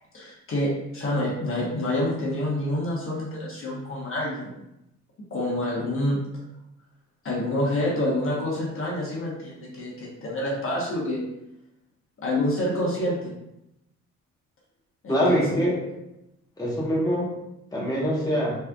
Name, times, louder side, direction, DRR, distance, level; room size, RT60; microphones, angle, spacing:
voice 1, 0.1-4.5 5.3-6.2 7.2-11.2 12.2-13.3 15.0-15.7, left 1 dB, 45° left, -4 dB, 1.1 m, -27 dB
voice 2, 15.1-15.8 16.6-17.3 17.7-18.6, equal, 10° left, -5 dB, 1.1 m, -23 dB
3.6 x 3.3 x 2.3 m, 0.87 s
cardioid pair, 90°, 30 cm